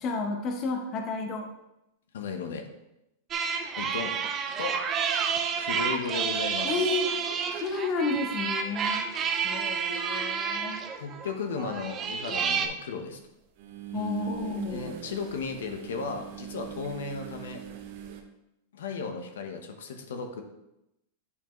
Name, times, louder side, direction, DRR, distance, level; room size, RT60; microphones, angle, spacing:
voice 1, 0.0-1.5 6.6-7.1 7.5-9.1 9.4-10.8 13.9-15.0, left 3 dB, 35° left, 3 dB, 0.8 m, -31 dB
voice 2, 2.1-2.6 3.8-4.2 4.6-4.7 5.6-6.7 10.9-13.2 14.7-17.6 18.7-20.4, left 5 dB, 85° left, 4 dB, 0.9 m, -35 dB
sound 1, 3.3-12.7, right 6 dB, 25° right, 0.6 m, -30 dB
sound 2, 11.6-11.7 13.6-18.2, right 9 dB, 55° right, 0.8 m, -41 dB
8.4 x 4.5 x 3.1 m, 0.89 s
supercardioid pair, 140°, 0 cm